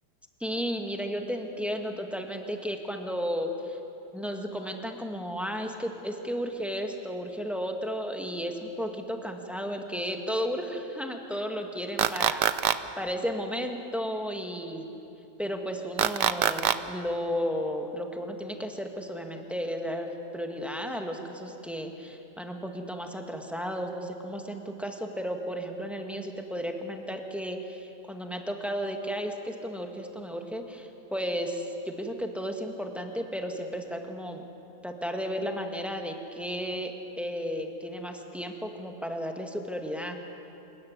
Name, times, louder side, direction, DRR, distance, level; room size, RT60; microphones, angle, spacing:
voice 1, 0.4-3.8 4.1-12.4 13.0-14.9 15.4-34.4 34.8-40.2, equal, ahead, 3 dB, 1.5 m, -33 dB
sound 1, 12.0-12.8 16.0-16.8, right 11 dB, 80° right, 1.3 m, -23 dB
26.5 x 15.0 x 9.6 m, 2.9 s
omnidirectional pair, 1.9 m